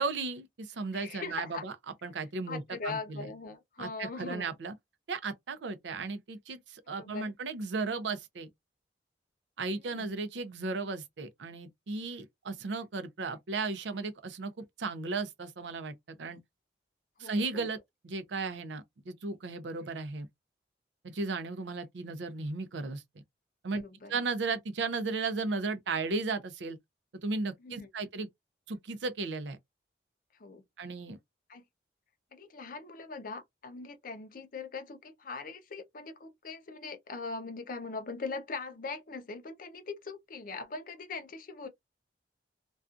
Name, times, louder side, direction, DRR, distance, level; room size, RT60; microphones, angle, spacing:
voice 1, 0.0-1.7 2.0-3.3 3.8-4.7 5.1-8.5 9.6-14.5 14.8-16.4 17.2-17.8 18.0-20.3 21.0-23.0 23.6-23.8 24.1-26.8 27.2-28.3 28.7-29.6 30.8-31.2, right 3 dB, 85° right, 0.5 m, -35 dB
voice 2, 0.9-1.6 2.5-4.5 6.9-7.3 9.7-10.1 17.2-17.7 23.7-24.1 27.6-27.9 30.4-30.6 31.5-31.6 32.3-41.7, left 4 dB, 50° left, 0.5 m, -41 dB
2.5 x 2.3 x 2.4 m
head